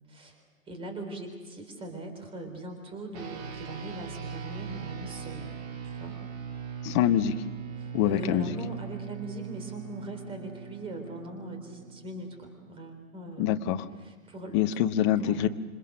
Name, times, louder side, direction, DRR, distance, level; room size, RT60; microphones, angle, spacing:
voice 1, 0.1-5.5 5.8-6.2 7.8-13.6 14.0-14.6 15.2-15.4, right 1 dB, 15° right, 5 dB, 3.9 m, -40 dB
sound 1, 3.1-12.8, right 7 dB, 30° right, 2.6 m, -40 dB
voice 2, 6.8-7.3 7.9-8.5 13.4-13.8 14.5-15.5, left 11 dB, 20° left, 11 dB, 0.8 m, -25 dB
27.5 x 25.5 x 6.5 m, 1.4 s
figure-of-eight pair, 125°, 41 cm